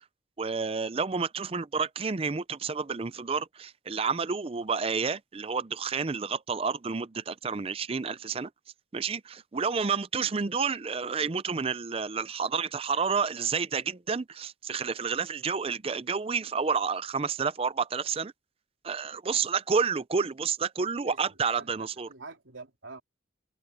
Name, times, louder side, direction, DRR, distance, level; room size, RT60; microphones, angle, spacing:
voice 1, 0.4-8.5 8.9-18.3 18.8-22.1, right 5 dB, 30° right, 0.5 m, -30 dB
voice 2, 21.5-23.0, right 3 dB, 85° right, 3.8 m, -46 dB
head